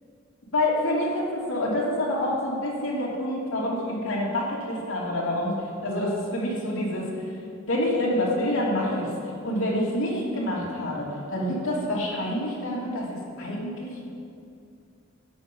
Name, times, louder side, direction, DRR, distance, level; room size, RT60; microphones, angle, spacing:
voice 1, 0.5-5.6 5.8-7.1 7.7-9.1 9.4-13.1 13.4-13.9, left 1 dB, 85° left, -5 dB, 2.7 m, -27 dB
13.5 x 6.8 x 5.4 m, 2.4 s
head